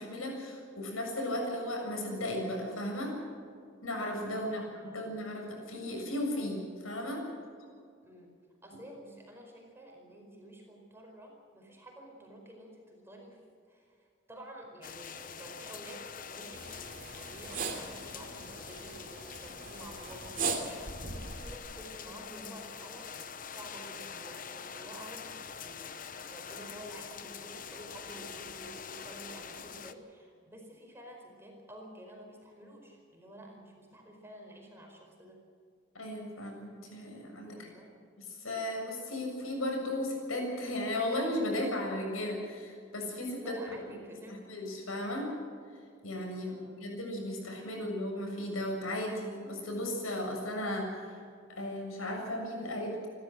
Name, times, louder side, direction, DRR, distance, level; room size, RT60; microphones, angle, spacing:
voice 1, 0.0-3.1 3.8-7.2 35.9-37.7 38.2-43.5 44.3-45.3 46.0-51.2 51.5-53.1, left 1 dB, 90° left, 1 dB, 7.1 m, -35 dB
voice 2, 4.3-5.0 8.0-8.3 8.6-13.4 13.7-23.2 23.5-25.9 26.3-35.4 37.5-37.9 43.4-44.5 46.4-46.7, right 1 dB, 10° right, 1 dB, 4.7 m, -50 dB
sound 1, 14.8-29.9, left 6 dB, 40° left, 0.9 m, -45 dB
sound 2, 16.5-21.6, right 4 dB, 40° right, 2.8 m, -39 dB
29.5 x 13.0 x 7.8 m, 2.3 s
head